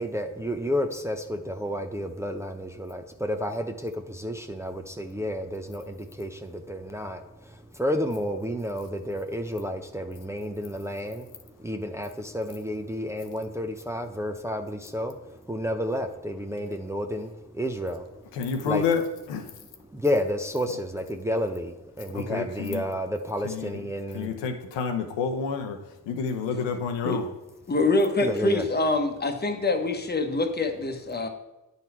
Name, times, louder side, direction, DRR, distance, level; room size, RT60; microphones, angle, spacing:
voice 1, 0.0-7.2 7.8-11.2 11.6-15.1 15.5-17.3 17.6-18.0 18.6-18.8 20.0-24.3 28.2-28.6, equal, 5° right, 5 dB, 0.6 m, -30 dB
voice 2, 18.3-19.0 19.3-19.5 22.1-22.8 23.4-23.8 24.1-25.8 26.1-27.3, left 6 dB, 85° left, 5 dB, 0.9 m, -29 dB
voice 3, 27.7-31.3, left 2 dB, 25° left, 5 dB, 1.1 m, -25 dB
9.0 x 4.1 x 4.4 m, 1.0 s
supercardioid pair, 55°, 42 cm